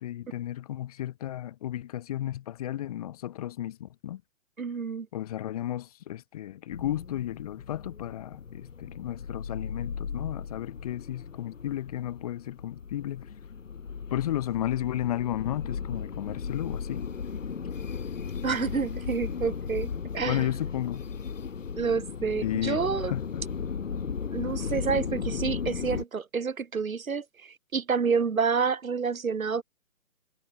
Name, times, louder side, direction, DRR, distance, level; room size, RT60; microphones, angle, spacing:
voice 1, 0.0-4.2 5.1-13.3 14.1-17.1 20.2-21.0 22.4-23.4, left 12 dB, 25° left, 4.8 m, -33 dB
voice 2, 4.6-5.1 18.4-20.5 21.8-23.1 24.3-29.6, right 5 dB, 80° right, 3.4 m, -29 dB
sound 1, 6.7-26.0, left 6 dB, 65° left, 3.9 m, -36 dB
hypercardioid pair, 170°, 41 cm